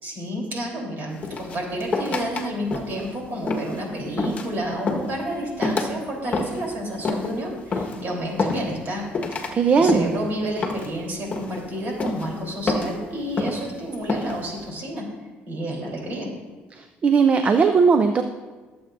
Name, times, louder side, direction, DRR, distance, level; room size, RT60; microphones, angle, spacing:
voice 1, 0.0-9.1 9.7-15.1 15.5-16.3, right 1 dB, 50° right, -1 dB, 3.6 m, -30 dB
sound 1, 1.2-2.4 2.7-3.1 3.4-3.8 4.2-4.5 4.9-5.2 5.6-5.9 6.3-6.7 7.0-7.3 7.7-8.0 8.4-8.9 9.1-9.5 9.9-10.2 10.6-11.0 11.3-11.6 12.0-12.3 12.7-13.0 13.4-13.7 14.1-14.4, left 3 dB, 35° left, 1.3 m, -27 dB
voice 2, 9.5-10.1 16.7-18.2, right 5 dB, 35° right, 7 dB, 0.5 m, -18 dB
21.5 x 7.8 x 2.6 m, 1.3 s
cardioid pair, 120°, 4 cm